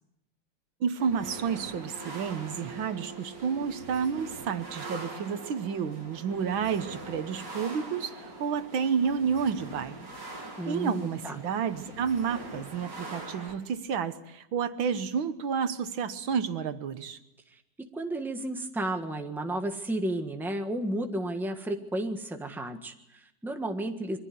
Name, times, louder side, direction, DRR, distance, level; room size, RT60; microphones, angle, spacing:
voice 1, 0.8-10.1 10.7-17.2, right 6 dB, 85° right, 11 dB, 2.0 m, -30 dB
sound 1, 1.0-13.5, right 2 dB, 45° right, 3.4 m, -43 dB
voice 2, 10.6-11.4 17.8-24.2, right 1 dB, ahead, 5 dB, 1.3 m, -32 dB
23.5 x 15.0 x 9.4 m, 0.84 s
omnidirectional pair, 2.1 m